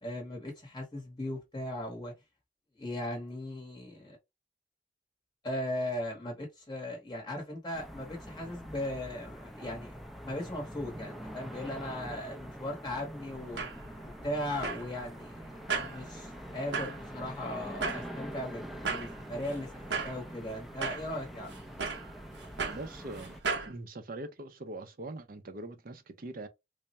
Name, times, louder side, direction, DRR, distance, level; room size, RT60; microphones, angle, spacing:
voice 1, 0.0-2.1 2.8-4.2 5.4-9.9 10.2-13.6 14.2-21.5, left 1 dB, 25° left, 0.9 m, -38 dB
sound 1, 7.7-23.4, equal, ahead, 0.4 m, -45 dB
sound 2, 13.3-23.7, right 4 dB, 85° right, 0.8 m, -38 dB
voice 2, 22.7-23.3 23.7-26.5, right 2 dB, 55° right, 0.6 m, -42 dB
3.4 x 2.0 x 4.1 m
head